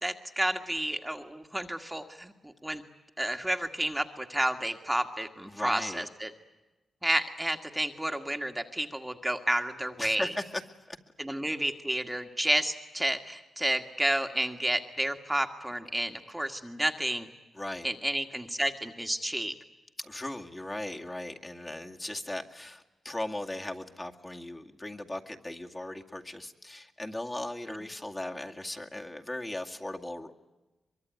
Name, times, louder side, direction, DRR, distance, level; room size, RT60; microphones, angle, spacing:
voice 1, 0.0-2.3 2.6-2.8 3.2-6.3 7.0-10.3 11.2-17.3 17.8-19.5 27.7-27.8, right 1 dB, 10° right, 5 dB, 1.8 m, -31 dB
voice 2, 5.5-6.0 10.0-10.6 10.9-11.0 17.6-17.9 20.0-30.3, left 1 dB, 20° left, 2 dB, 2.2 m, -37 dB
24.0 x 22.5 x 9.5 m, 1.1 s
cardioid pair, 65°, 0 cm